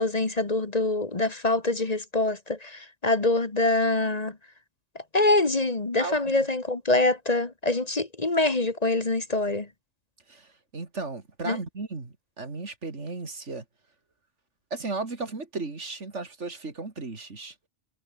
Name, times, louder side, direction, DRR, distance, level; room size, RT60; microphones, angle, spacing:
voice 1, 0.0-4.4 5.1-9.7 11.5-11.6, left 2 dB, 35° left, 1.7 m, -25 dB
voice 2, 10.3-13.6 14.7-17.5, right 3 dB, 80° right, 3.3 m, -35 dB
omnidirectional pair, 1.2 m